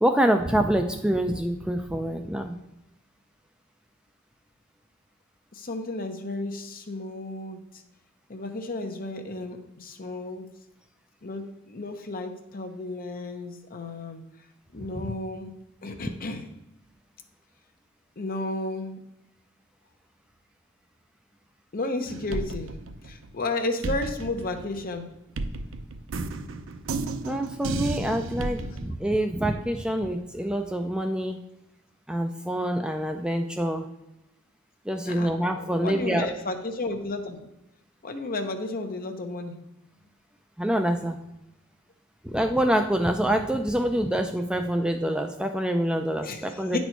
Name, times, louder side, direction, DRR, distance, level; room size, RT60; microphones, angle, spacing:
voice 1, 0.0-2.6 15.0-15.1 27.2-31.4 32.1-33.9 34.9-36.3 40.6-41.2 42.2-46.8, right 1 dB, 5° right, 5 dB, 0.4 m, -26 dB
voice 2, 5.5-7.8 8.3-10.5 11.2-14.2 14.7-15.5 15.8-16.5 18.2-19.0 21.7-25.1 28.6-28.7 35.1-35.3 35.6-37.5 38.0-39.6 46.2-46.8, left 2 dB, 45° left, 6 dB, 0.8 m, -33 dB
sound 1, 22.1-23.5 23.8-28.9, right 3 dB, 70° right, 0.5 m, -33 dB
9.0 x 4.3 x 4.5 m, 0.92 s
head